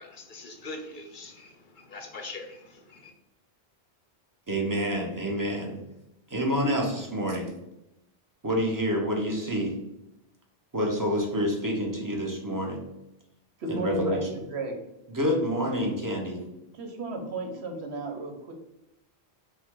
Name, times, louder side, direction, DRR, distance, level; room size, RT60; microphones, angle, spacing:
voice 1, 0.0-3.1, left 2 dB, 55° left, 5 dB, 0.7 m, -42 dB
voice 2, 4.5-5.8 6.3-7.5 8.4-9.7 10.7-12.8 13.7-14.3 15.1-16.4, equal, 20° right, -1 dB, 0.9 m, -28 dB
voice 3, 13.6-14.8 16.4-16.5 16.7-18.5, right 2 dB, 80° right, 4 dB, 1.1 m, -34 dB
5.7 x 2.4 x 3.7 m, 0.87 s
omnidirectional pair, 1.1 m